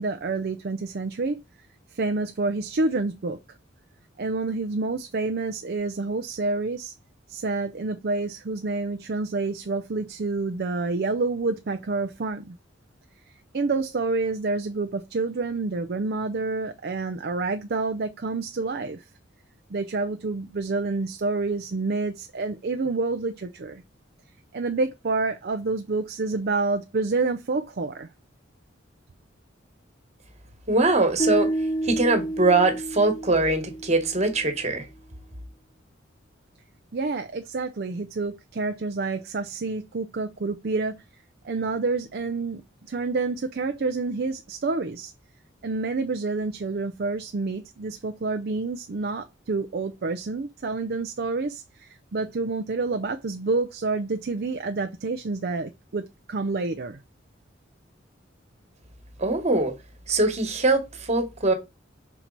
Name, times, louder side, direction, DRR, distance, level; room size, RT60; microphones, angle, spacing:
voice 1, 0.0-1.4 1.9-3.4 4.2-6.9 7.3-12.6 13.5-19.0 19.7-23.8 24.5-28.1 36.9-40.9 41.4-42.6 42.9-45.1 45.6-57.0, right 3 dB, 55° right, 0.5 m, -28 dB
voice 2, 30.7-31.5 31.8-34.8 59.2-59.7 60.1-60.8 61.1-61.5, right 2 dB, 35° right, 1.5 m, -22 dB
sound 1, 31.2-34.4, right 1 dB, 25° left, 0.6 m, -29 dB
5.7 x 4.5 x 4.0 m
head